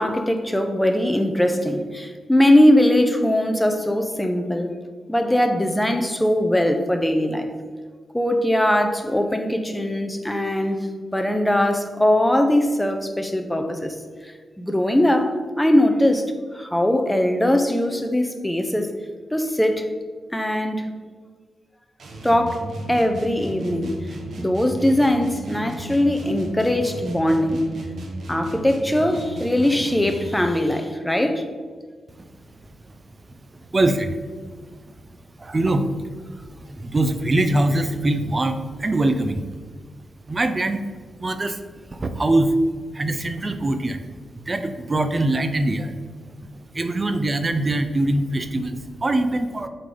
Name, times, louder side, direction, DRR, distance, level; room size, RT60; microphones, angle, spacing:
voice 1, 0.0-4.7 5.1-7.5 8.1-10.9 11.1-13.9 14.2-14.3 14.6-16.3 16.5-18.9 19.3-19.9 20.3-20.9 22.2-24.1 24.4-27.6 28.3-31.5, left 1 dB, 5° left, 6 dB, 0.8 m, -20 dB
sound 1, 22.0-30.5, right 1 dB, 65° right, 1.3 m, -35 dB
voice 2, 33.3-34.2 34.7-34.8 35.4-39.5 40.3-40.8 41.2-41.6 41.9-42.5 42.9-44.1 44.3-45.9 46.5-49.7, right 2 dB, 30° right, 8 dB, 0.6 m, -23 dB
7.9 x 3.9 x 5.1 m, 1.5 s
cardioid pair, 90°, 0 cm